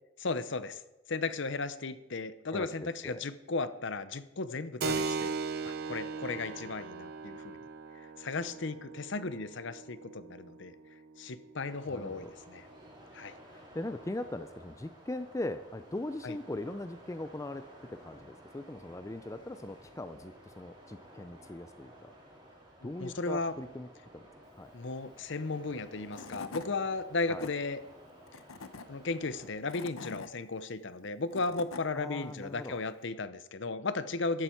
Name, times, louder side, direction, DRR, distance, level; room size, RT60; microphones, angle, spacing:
voice 1, 0.2-0.8 1.1-5.3 5.6-7.6 8.2-10.7 11.2-12.6 13.1-13.3 16.2-16.4 22.8-23.5 24.7-27.8 28.9-34.4, left 3 dB, 60° left, 13 dB, 0.7 m, -35 dB
voice 2, 2.5-3.2 11.9-12.3 13.4-17.6 17.9-22.1 22.8-24.3 24.5-24.7 27.3-27.5 31.9-32.8, left 1 dB, 15° left, 10 dB, 0.4 m, -40 dB
Keyboard (musical), 4.8-13.0, right 4 dB, 50° right, 0.7 m, -39 dB
sound 1, 11.6-29.5, equal, 20° right, 3.1 m, -54 dB
Tools / Wood, 25.8-25.9 26.1-26.7 27.2-27.5 28.3-28.8 29.5-30.3 31.0-31.8, left 4 dB, 85° left, 0.9 m, -44 dB
15.0 x 11.5 x 4.5 m, 0.96 s
head